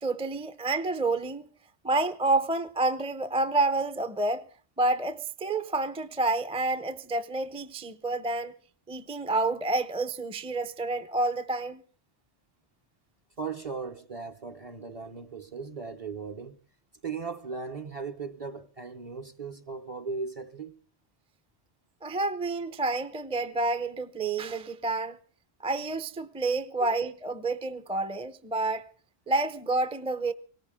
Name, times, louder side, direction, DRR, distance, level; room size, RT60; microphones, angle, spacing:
voice 1, 0.0-1.5 1.8-4.5 4.8-8.6 8.9-11.8 22.0-25.2 25.6-28.9 29.3-30.3, right 2 dB, 5° right, 0.5 m, -29 dB
voice 2, 13.4-16.6 17.0-20.7 26.8-27.0, right 5 dB, 35° right, 0.8 m, -37 dB
19.5 x 18.0 x 3.6 m
omnidirectional pair, 1.2 m